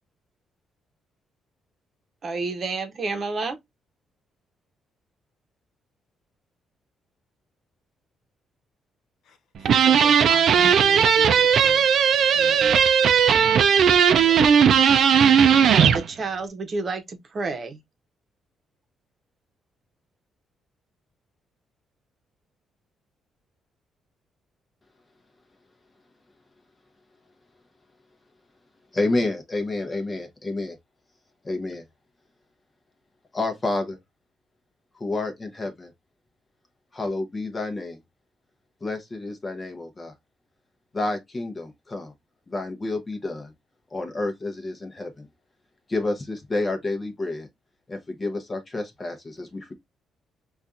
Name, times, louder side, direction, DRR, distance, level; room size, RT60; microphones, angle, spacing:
voice 1, 2.2-3.6 14.2-14.7 15.8-17.8, right 3 dB, 45° right, 0.8 m, -30 dB
voice 2, 9.3-11.8 12.3-12.6, left 4 dB, 80° left, 0.7 m, -40 dB
sound 1, 9.6-16.0, right 7 dB, 65° right, 0.4 m, -17 dB
voice 3, 28.9-30.8 31.4-31.8 33.3-34.0 34.9-35.9 36.9-38.0 38.8-40.1 40.9-42.1 42.5-43.5 43.9-45.3 45.9-47.5 47.9-49.7, left 2 dB, 30° left, 0.7 m, -29 dB
4.1 x 2.4 x 2.4 m
cardioid pair, 90°, 0 cm